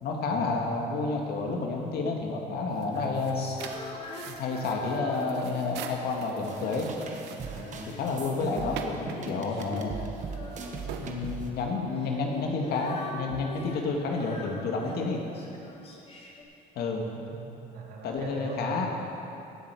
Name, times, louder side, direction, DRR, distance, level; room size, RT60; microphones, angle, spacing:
voice 1, 0.0-3.5 4.3-6.9 7.9-9.9 11.0-15.2 16.8-17.1 18.0-18.9, left 3 dB, 70° left, 1 dB, 1.9 m, -30 dB
sound 1, 2.7-11.8, right 7 dB, 85° right, 0.9 m, -44 dB
voice 2, 2.9-3.3 7.4-7.8 17.3-18.9, right 5 dB, 65° right, -2 dB, 2.3 m, -40 dB
Female singing, 3.3-5.7 6.2-8.0 8.3-11.1 11.9-16.4, left 2 dB, 35° left, 2.1 m, -44 dB
sound 2, 6.4-11.5, right 4 dB, 45° right, 1.4 m, -39 dB
17.5 x 7.9 x 4.8 m, 2.9 s
cardioid pair, 110°, 17 cm